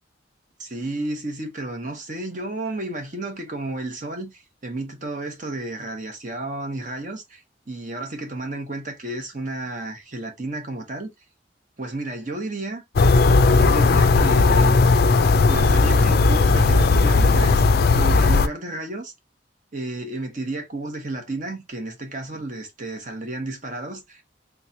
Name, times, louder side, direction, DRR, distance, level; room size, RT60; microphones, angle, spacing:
voice 1, 0.6-11.1 11.8-12.8 13.4-14.8 15.5-19.1 19.7-24.2, right 2 dB, 40° right, 1.0 m, -32 dB
sound 1, 13.0-18.5, left 3 dB, 50° left, 0.4 m, -16 dB
3.6 x 3.1 x 2.6 m
head